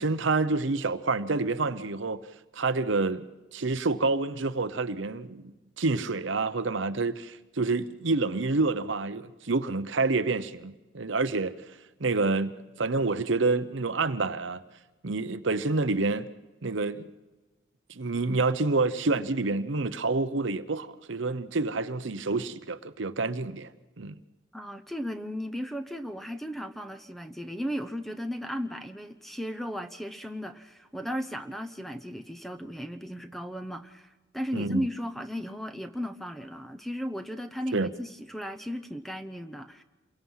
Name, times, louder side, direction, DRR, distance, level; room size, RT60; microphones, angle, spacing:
voice 1, 0.0-2.2 2.5-3.2 3.5-11.5 12.0-12.5 12.8-14.6 15.0-16.3 16.6-17.1 17.9-23.7 24.0-24.1 34.5-34.8 37.7-37.9, right 3 dB, 70° right, 0.8 m, -28 dB
voice 2, 24.5-39.8, equal, ahead, 0.8 m, -36 dB
28.0 x 23.0 x 5.7 m
head